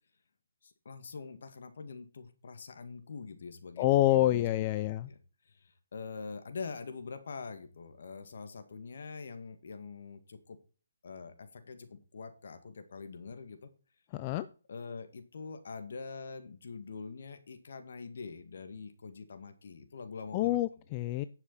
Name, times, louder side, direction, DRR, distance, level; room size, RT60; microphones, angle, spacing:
voice 1, 0.6-4.6 5.1-5.2 5.5-10.6 11.0-13.7 14.7-20.6, left 4 dB, 60° left, 9 dB, 2.1 m, -44 dB
voice 2, 3.8-5.1 14.1-14.5 20.3-21.2, left 15 dB, 25° left, 13 dB, 0.4 m, -27 dB
10.5 x 7.3 x 4.2 m, 0.36 s
hypercardioid pair, 160°, 0 cm